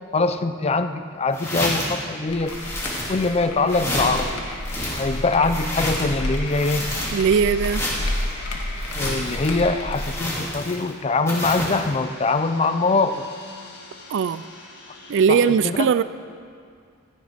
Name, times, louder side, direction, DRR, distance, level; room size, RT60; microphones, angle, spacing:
voice 1, 0.1-2.5 3.1-4.4 5.0-6.9 8.9-13.3 15.3-15.9, left 3 dB, 30° left, 0.5 m, -23 dB
sound 1, 1.3-2.0 2.5-3.4 3.7-4.3 4.6-6.2 6.5-7.3 7.6-8.2 8.8-9.5 9.9-10.9 11.3-11.9, left 1 dB, 15° left, 2.5 m, -29 dB
sound 2, 2.3-10.1, left 1 dB, 80° left, 1.7 m, -31 dB
sound 3, 5.3-15.5, left 2 dB, 50° left, 1.9 m, -44 dB
voice 2, 7.1-7.9 14.1-14.4 15.1-16.0, right 6 dB, 55° right, 0.3 m, -19 dB
16.0 x 14.0 x 3.5 m
head